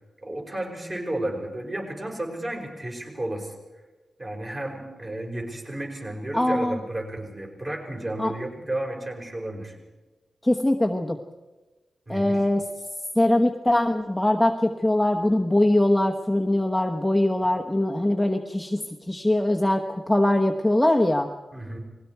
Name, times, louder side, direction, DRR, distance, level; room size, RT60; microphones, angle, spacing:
voice 1, 0.2-3.5 4.2-9.8 12.1-12.4 21.5-21.8, right 1 dB, 25° right, 1 dB, 5.2 m, -32 dB
voice 2, 6.3-6.8 8.2-8.3 10.4-11.2 12.1-12.6 13.1-21.3, left 1 dB, 5° left, 2 dB, 1.1 m, -22 dB
30.0 x 21.0 x 4.7 m, 1.2 s
wide cardioid pair, 175°, 0 cm